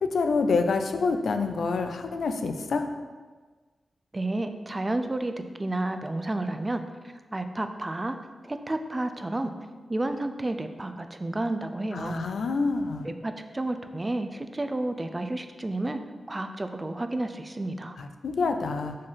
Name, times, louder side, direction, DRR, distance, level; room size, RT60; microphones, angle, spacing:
voice 1, 0.0-2.9 11.9-13.1 18.0-19.0, left 4 dB, 80° left, 7 dB, 0.5 m, -27 dB
voice 2, 4.1-8.2 8.4-9.5 9.9-12.2 13.0-16.0 16.3-18.0, right 2 dB, 25° right, 8 dB, 0.5 m, -31 dB
5.2 x 3.9 x 5.7 m, 1.4 s
cardioid pair, 70°, 0 cm